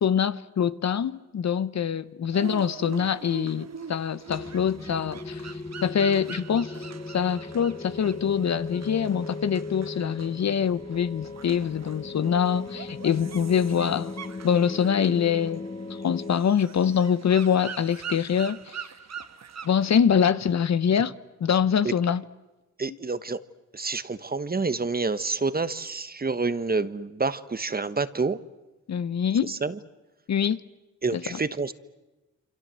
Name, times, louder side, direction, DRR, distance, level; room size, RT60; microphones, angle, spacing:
voice 1, 0.0-5.4 5.8-6.8 7.1-14.1 14.4-15.6 16.0-18.8 19.6-21.1 21.4-22.2 28.9-29.5 30.3-30.6 31.1-31.4, left 7 dB, 60° left, 1.0 m, -24 dB
sound 1, 2.3-19.9, right 7 dB, 60° right, 1.4 m, -43 dB
sound 2, 4.3-16.3, left 3 dB, 25° left, 1.9 m, -37 dB
voice 2, 22.8-23.4 23.7-28.4 29.5-29.8 31.0-31.7, right 4 dB, 30° right, 1.3 m, -28 dB
27.5 x 26.0 x 7.7 m
cardioid pair, 65°, 30 cm